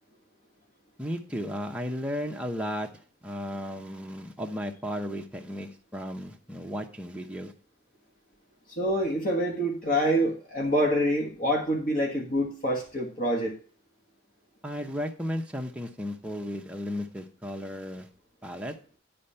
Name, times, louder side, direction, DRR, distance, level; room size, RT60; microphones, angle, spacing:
voice 1, 1.0-2.9 3.2-7.5 14.6-18.1 18.4-18.7, equal, 5° right, 2 dB, 0.9 m, -34 dB
voice 2, 8.7-13.6, equal, 45° left, 0 dB, 1.5 m, -26 dB
10.5 x 4.4 x 5.6 m, 0.40 s
head